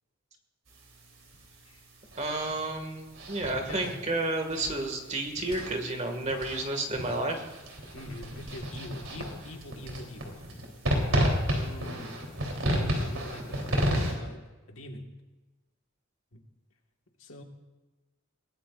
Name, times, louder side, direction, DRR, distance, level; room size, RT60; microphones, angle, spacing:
sound 1, 0.7-14.1, equal, 75° right, 3.4 m, -33 dB
voice 1, 2.2-7.5, right 2 dB, 35° right, 4 dB, 1.9 m, -31 dB
voice 2, 7.9-10.5 11.5-12.1 12.6-14.4 14.7-15.1 16.3-16.4 17.2-17.4, left 1 dB, 75° left, 2 dB, 1.7 m, -42 dB
21.5 x 17.0 x 2.5 m, 1.2 s
head